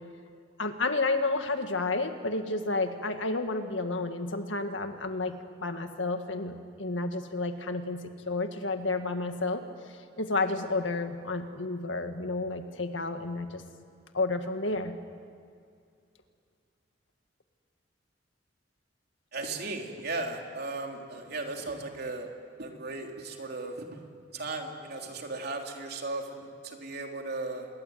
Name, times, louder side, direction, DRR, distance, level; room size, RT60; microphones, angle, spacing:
voice 1, 0.6-5.4 5.6-9.6 10.2-13.6 14.1-15.0, left 3 dB, 85° left, 7 dB, 2.0 m, -31 dB
voice 2, 19.3-22.3 22.6-23.9 24.3-27.7, right 3 dB, 60° right, 2 dB, 3.5 m, -36 dB
27.0 x 22.5 x 9.4 m, 2.2 s
head